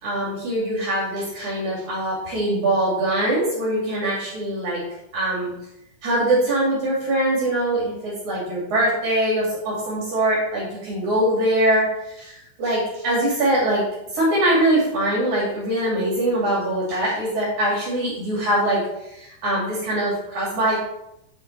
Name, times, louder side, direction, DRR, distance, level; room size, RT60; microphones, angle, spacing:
voice 1, 0.0-4.8 5.1-5.5 6.0-13.8 14.1-18.8 19.1-20.8, right 1 dB, 45° right, -5 dB, 2.8 m, -22 dB
8.4 x 5.8 x 3.3 m, 0.82 s
omnidirectional pair, 5.9 m